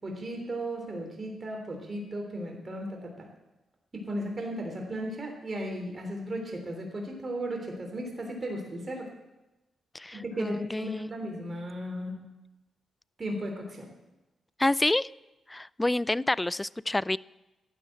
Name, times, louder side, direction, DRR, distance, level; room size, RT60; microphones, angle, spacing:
voice 1, 0.0-3.3 3.9-9.1 10.1-12.2 13.2-13.9, right 1 dB, 40° right, 1 dB, 3.3 m, -35 dB
voice 2, 9.9-11.1 14.6-15.1 15.5-17.2, left 1 dB, 20° left, 22 dB, 0.4 m, -28 dB
12.0 x 10.0 x 7.7 m, 1.0 s
hypercardioid pair, 45°, 0 cm